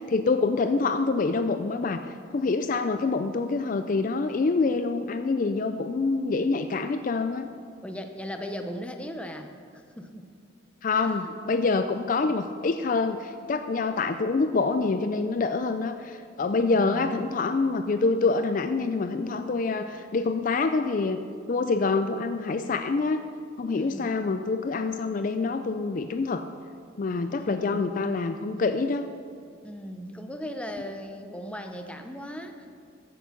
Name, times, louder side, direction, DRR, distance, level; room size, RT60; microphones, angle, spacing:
voice 1, 0.0-7.5 10.8-21.2 21.5-23.2 23.6-26.5 27.0-29.1, left 3 dB, 40° left, 9 dB, 0.4 m, -26 dB
voice 2, 7.8-10.3 10.9-11.3 16.6-17.3 23.8-24.1 27.3-27.8 29.6-32.7, equal, 5° left, 5 dB, 0.6 m, -38 dB
14.5 x 7.0 x 5.9 m, 2.2 s
head